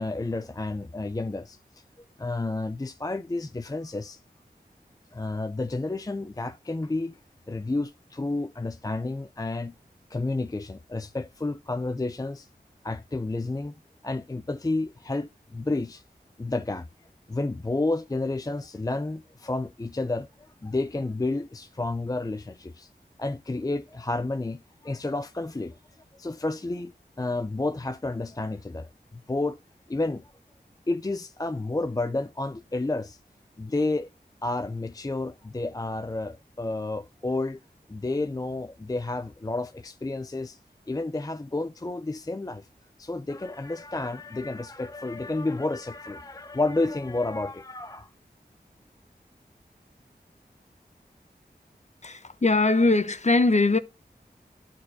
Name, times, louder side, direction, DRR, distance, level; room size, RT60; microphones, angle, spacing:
voice 1, 0.0-1.6 2.2-4.2 5.1-7.2 7.5-9.7 10.1-12.5 12.8-13.7 14.0-16.0 16.4-16.9 17.3-22.9 23.2-25.8 26.2-26.9 27.2-29.6 29.9-30.3 30.9-33.2 33.6-34.1 34.4-37.6 37.9-40.6 40.9-42.7 43.0-48.1, left 2 dB, 20° left, 0.4 m, -30 dB
voice 2, 52.0-53.8, left 2 dB, 40° left, 0.8 m, -21 dB
12.0 x 4.3 x 2.6 m
wide cardioid pair, 60°, 17 cm